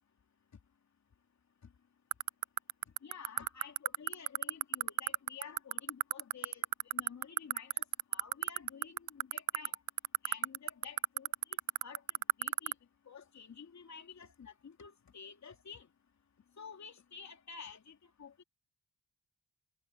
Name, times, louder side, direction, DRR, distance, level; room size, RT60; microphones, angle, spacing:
sound 1, 2.1-12.7, right 18 dB, 85° right, 0.5 m, -30 dB
voice 1, 3.0-6.7 6.9-7.8 8.1-9.8 10.2-11.3 11.8-12.0 12.4-12.7 13.1-15.9 16.6-18.4, left 6 dB, 55° left, 3.0 m, -51 dB
cardioid pair, 60°, 34 cm